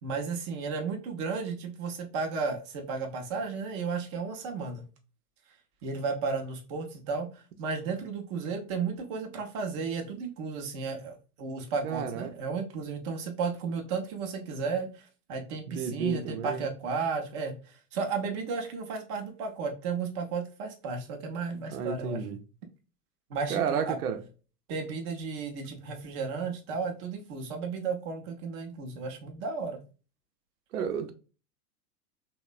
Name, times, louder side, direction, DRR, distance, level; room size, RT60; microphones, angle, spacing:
voice 1, 0.0-4.9 5.8-22.3 23.3-24.0 24.7-29.8, right 5 dB, 20° right, 0.4 m, -34 dB
voice 2, 11.8-12.3 15.7-16.7 21.7-22.4 23.5-24.2 30.7-31.1, right 7 dB, 70° right, 0.6 m, -31 dB
3.1 x 2.1 x 2.2 m
figure-of-eight pair, 105°, 47 cm